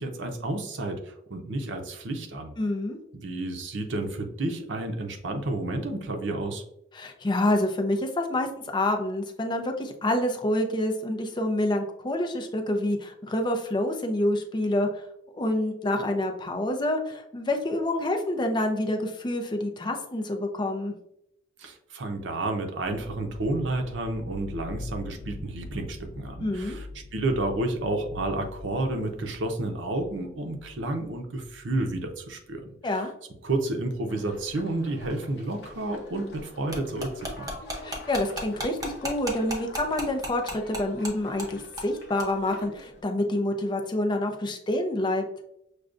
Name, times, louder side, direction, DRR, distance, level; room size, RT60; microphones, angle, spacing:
voice 1, 0.0-2.5 3.1-6.6 21.6-26.9 27.1-32.7 33.4-37.5, right 2 dB, 80° right, 5 dB, 0.7 m, -31 dB
voice 2, 2.6-3.0 6.9-8.5 8.7-15.0 15.4-20.9 26.4-26.8 32.8-33.1 37.8-45.2, left 1 dB, 25° left, 5 dB, 0.5 m, -27 dB
sound 1, 22.8-32.6, left 2 dB, 85° left, 0.6 m, -44 dB
sound 2, 34.1-43.0, left 1 dB, 65° left, 0.9 m, -46 dB
sound 3, 36.7-41.1 41.4-41.5 41.8-41.9 42.2-42.3, right 1 dB, 20° right, 0.7 m, -33 dB
6.3 x 2.2 x 2.5 m, 0.78 s
head